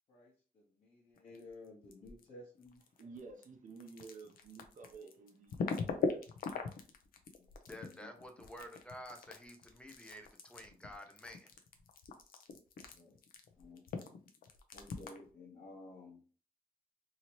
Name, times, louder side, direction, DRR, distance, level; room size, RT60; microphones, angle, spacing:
voice 1, 0.1-2.8 7.4-7.5 7.8-8.1 12.9-13.2 13.6-13.8 14.7-16.2, left 2 dB, 50° left, -7 dB, 1.0 m, -54 dB
sound 1, 1.2-2.3 2.5-15.3, left 5 dB, 70° left, 0.5 m, -42 dB
voice 2, 3.0-6.3, right 4 dB, 60° right, 3 dB, 0.7 m, -52 dB
voice 3, 7.7-11.5, equal, 5° left, 5 dB, 0.5 m, -50 dB
2.9 x 2.7 x 3.0 m, 0.39 s
wide cardioid pair, 140°, 15 cm